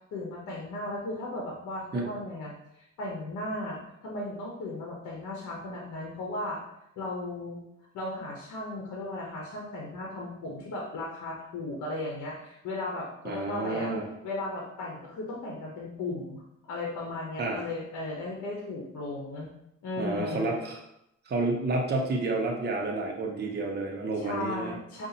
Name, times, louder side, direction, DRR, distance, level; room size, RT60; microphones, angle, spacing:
voice 1, 0.1-6.6 7.0-7.6 7.9-13.9 14.2-19.5 19.8-20.5 24.2-25.1, left 2 dB, 75° left, -2 dB, 1.0 m, -36 dB
voice 2, 13.2-14.0 17.4-17.6 20.0-20.8 21.3-24.7, right 2 dB, 35° right, 0 dB, 0.8 m, -30 dB
5.3 x 2.5 x 2.8 m, 0.80 s
cardioid pair, 90°, 30 cm